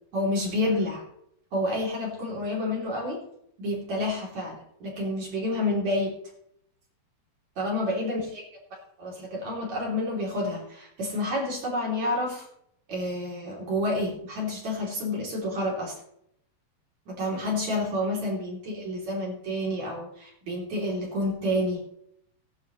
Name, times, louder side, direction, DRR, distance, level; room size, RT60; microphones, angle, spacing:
voice 1, 0.1-1.0 1.5-3.2 3.6-6.2 7.6-8.4 9.0-12.5 12.9-15.9 17.1-21.8, left 1 dB, 50° right, -3 dB, 4.2 m, -29 dB
19.5 x 11.0 x 3.1 m, 0.73 s
omnidirectional pair, 4.3 m